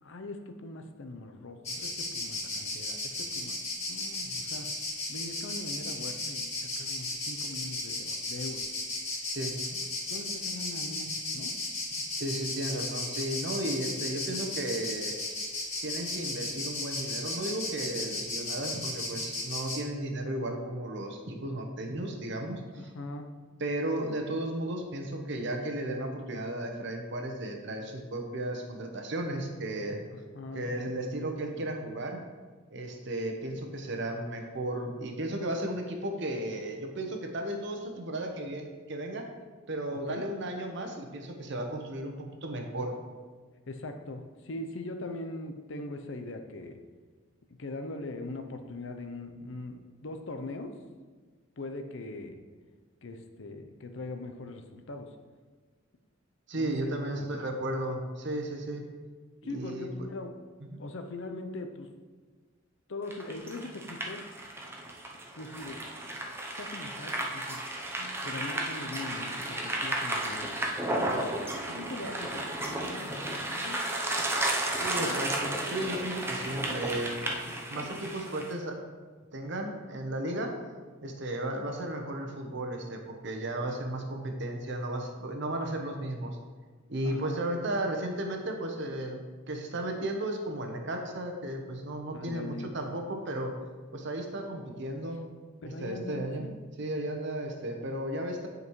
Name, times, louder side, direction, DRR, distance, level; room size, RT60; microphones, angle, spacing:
voice 1, 0.0-3.6 3.9-4.7 5.1-8.6 10.1-11.5 15.2-15.3 22.7-23.3 30.1-30.7 39.9-40.2 43.7-46.8 47.6-50.8 51.6-52.4 53.0-55.1 56.5-57.4 59.4-60.4 60.8-61.9 62.9-64.3 65.3-66.0 66.5-67.6 68.0-71.3 71.7-73.8 75.0-75.2 87.0-87.4 92.1-92.7 95.6-96.5, left 2 dB, 65° left, 6 dB, 0.6 m, -41 dB
Insect, 1.6-19.8, left 2 dB, 35° left, 2.3 m, -35 dB
voice 2, 12.2-15.1 15.8-22.6 23.6-30.0 30.5-32.2 32.7-39.2 39.7-42.9 56.5-58.9 59.4-59.9 60.7-60.8 74.8-78.8 79.3-80.5 81.0-86.4 86.9-89.2 89.5-93.5 93.9-95.2 95.6-96.5 96.8-98.5, right 1 dB, 60° right, 3 dB, 0.9 m, -34 dB
sound 1, 63.1-78.5, right 1 dB, 10° right, 0.7 m, -33 dB
9.6 x 5.2 x 3.1 m, 1.4 s
head